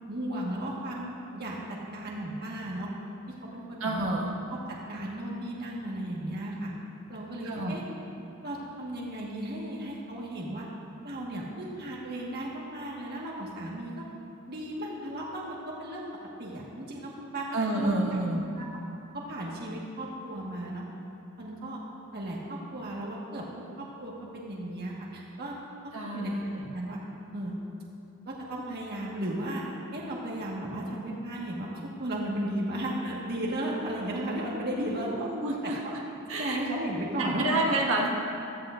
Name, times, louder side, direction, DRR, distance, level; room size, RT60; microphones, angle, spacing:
voice 1, 0.1-2.9 3.3-4.1 4.5-6.7 7.1-7.8 8.4-10.7 11.0-14.1 14.5-16.1 16.4-18.7 19.1-20.8 21.4-21.8 22.1-27.0 27.3-27.5 28.3-29.7 29.9-35.3 35.6-35.9 36.3-37.6 38.0-38.1, right 1 dB, 50° right, -4 dB, 1.5 m, -35 dB
voice 2, 3.8-4.3 7.4-7.7 17.5-18.4 25.9-26.5 34.8-36.0 36.3-36.6 37.2-38.1, right 2 dB, 75° right, -3 dB, 1.6 m, -29 dB
16.0 x 13.5 x 2.5 m, 2.7 s
head